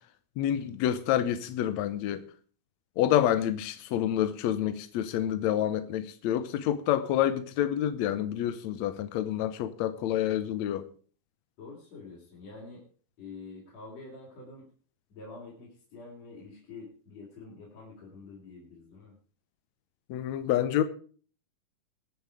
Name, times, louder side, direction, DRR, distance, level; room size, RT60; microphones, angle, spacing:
voice 1, 0.4-2.2 3.0-10.8 20.1-20.8, left 11 dB, 75° left, 1.7 m, -28 dB
voice 2, 11.6-12.8 13.2-14.7 15.1-19.2, left 3 dB, 50° left, 4.7 m, -47 dB
21.5 x 7.2 x 4.8 m
omnidirectional pair, 4.0 m